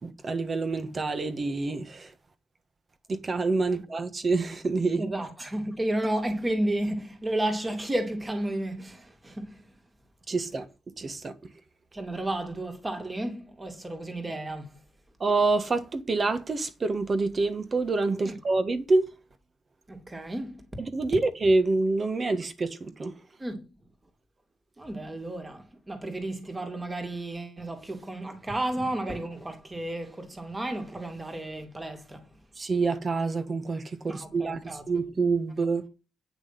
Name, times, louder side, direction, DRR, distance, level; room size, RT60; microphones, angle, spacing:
voice 1, 0.0-2.1 3.1-5.1 10.3-10.6 11.0-11.3 15.2-19.0 20.8-23.2 32.6-35.8, right 3 dB, 35° right, 1.5 m, -27 dB
voice 2, 5.0-9.7 11.9-14.8 18.2-18.3 19.9-20.7 23.4-23.7 24.8-32.3 34.1-34.8, right 1 dB, 15° right, 2.5 m, -32 dB
9.6 x 6.1 x 5.8 m
cardioid pair, 130°, 0 cm